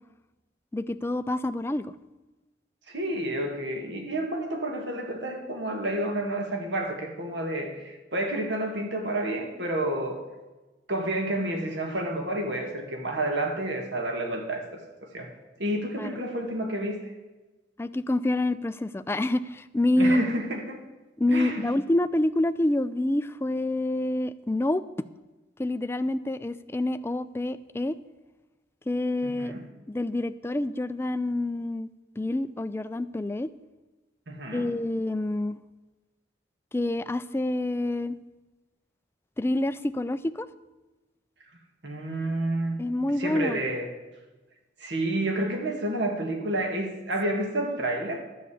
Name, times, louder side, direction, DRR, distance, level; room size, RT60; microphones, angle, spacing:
voice 1, 0.7-1.9 16.0-16.2 17.8-20.2 21.2-24.8 25.6-28.0 28.9-29.5 29.9-31.9 32.2-33.5 34.5-35.6 36.7-38.2 39.4-40.5 42.8-43.6, left 1 dB, 15° left, 13 dB, 0.3 m, -27 dB
voice 2, 2.9-10.2 10.9-14.7 15.0-15.3 15.6-17.1 20.0-20.8 21.3-21.7 29.2-29.6 34.3-34.7 41.8-42.8 43.2-43.9 44.8-48.2, right 1 dB, 75° right, 3 dB, 2.0 m, -30 dB
11.0 x 6.7 x 8.4 m, 1.1 s
head